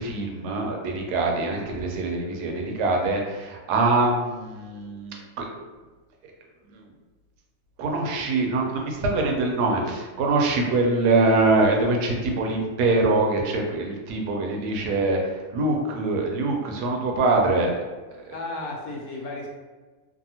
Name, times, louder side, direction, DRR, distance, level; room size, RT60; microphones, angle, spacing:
voice 1, 0.0-5.5 6.7-6.8 7.8-17.7, right 2 dB, 80° right, 0 dB, 1.1 m, -24 dB
voice 2, 18.1-19.5, left 2 dB, 70° left, -1 dB, 1.0 m, -34 dB
2.6 x 2.6 x 2.8 m, 1.3 s
omnidirectional pair, 1.7 m